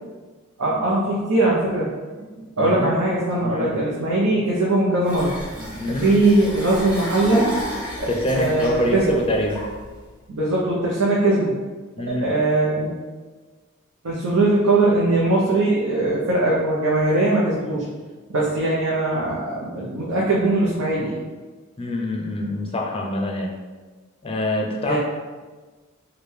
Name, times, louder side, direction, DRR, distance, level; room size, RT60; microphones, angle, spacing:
voice 1, 0.6-1.9 2.6-5.3 5.6-7.5 8.0-8.1 8.3-9.0 10.3-11.5 12.1-12.9 14.0-17.8 18.3-21.2 24.9-25.0, right 2 dB, 75° right, -6 dB, 0.7 m, -20 dB
voice 2, 2.6-3.0 3.4-3.8 5.8-6.2 8.1-9.6 12.0-12.3 21.8-23.5 24.2-25.0, left 1 dB, 25° left, 0 dB, 0.5 m, -25 dB
sound 1, 5.0-10.1, equal, 5° right, 0.9 m, -33 dB
4.9 x 2.2 x 3.2 m, 1.3 s
head